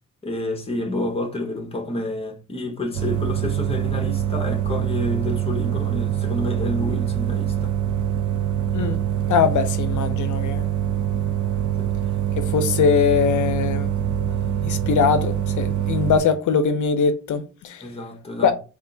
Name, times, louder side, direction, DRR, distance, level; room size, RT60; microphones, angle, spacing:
voice 1, 0.2-7.7 11.8-11.9 17.8-18.5, left 2 dB, 20° left, 0.9 m, -29 dB
sound 1, 2.9-16.2, right 10 dB, 75° right, 0.6 m, -24 dB
voice 2, 9.3-10.7 12.4-13.9 14.6-17.8 18.4-18.5, left 6 dB, 85° left, 0.5 m, -21 dB
3.4 x 2.5 x 3.7 m
wide cardioid pair, 165°, 29 cm